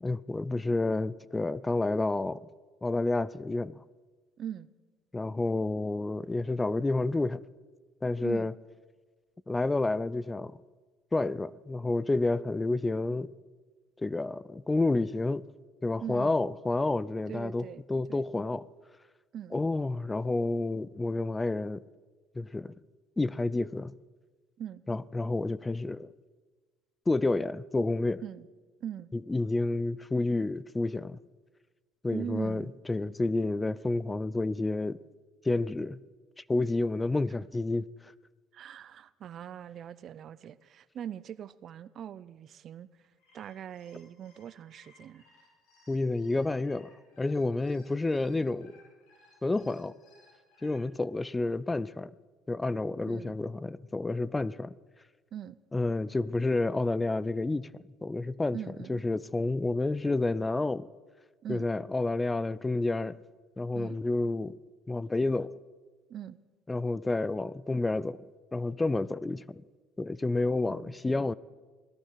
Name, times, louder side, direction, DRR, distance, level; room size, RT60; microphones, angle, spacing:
voice 1, 0.0-2.4 2.8-3.8 5.1-7.4 8.0-8.5 9.5-10.5 11.1-13.3 14.0-15.4 15.8-18.6 19.5-21.8 22.4-22.7 23.2-23.9 24.9-26.1 27.1-28.2 29.3-31.2 32.0-35.0 35.4-36.0 36.5-37.9 45.9-46.9 47.2-48.7 49.4-49.9 50.6-52.1 52.5-54.7 55.7-57.7 58.0-58.6 58.9-60.9 61.5-63.2 63.6-64.6 64.9-65.5 66.7-68.2 68.5-69.6 70.0-71.3, left 2 dB, 15° left, 0.4 m, -29 dB
voice 2, 4.4-4.7 8.2-8.5 16.0-16.4 17.3-17.8 18.1-18.3 19.3-19.6 24.6-24.8 28.2-28.5 28.8-29.1 32.1-32.7 38.5-45.2 53.1-53.4 55.3-55.6 58.5-59.0 61.4-61.7 63.7-64.0 66.1-66.4 70.7-71.3, right 9 dB, 50° right, 0.6 m, -41 dB
sound 1, 43.0-50.8, left 3 dB, 70° left, 6.2 m, -62 dB
17.5 x 14.0 x 5.7 m
supercardioid pair, 90°, 0 cm